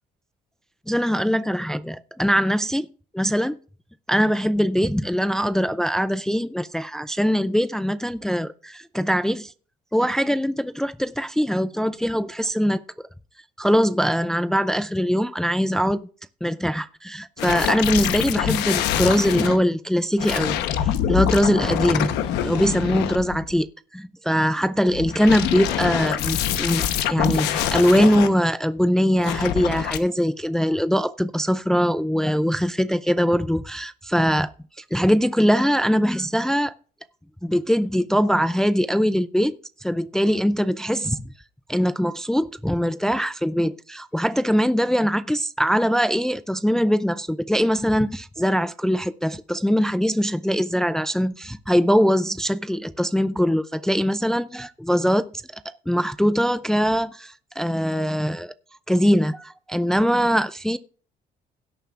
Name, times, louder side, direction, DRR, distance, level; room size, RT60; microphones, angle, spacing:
voice 1, 0.9-2.9 3.1-3.5 4.1-9.5 9.9-12.8 13.6-16.1 16.4-22.2 22.4-23.7 23.9-34.5 34.8-36.7 37.4-39.5 39.8-41.3 41.7-58.5 58.9-60.8, equal, 5° left, 0.4 m, -22 dB
sound 1, 17.4-19.6 20.2-23.6 24.9-28.3 29.2-30.0, left 10 dB, 90° left, 1.0 m, -25 dB
17.0 x 9.0 x 2.5 m
cardioid pair, 110°, 17 cm